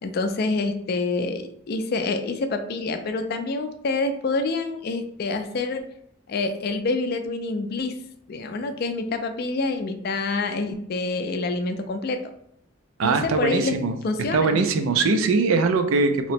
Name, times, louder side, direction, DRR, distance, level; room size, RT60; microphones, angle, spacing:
voice 1, 0.0-5.8 6.3-7.9 8.3-12.2 13.0-13.8 14.0-14.6, left 3 dB, 50° left, 7 dB, 0.3 m, -27 dB
voice 2, 13.0-13.9 14.3-16.3, right 4 dB, 75° right, 7 dB, 0.4 m, -21 dB
2.9 x 2.1 x 4.1 m, 0.72 s
head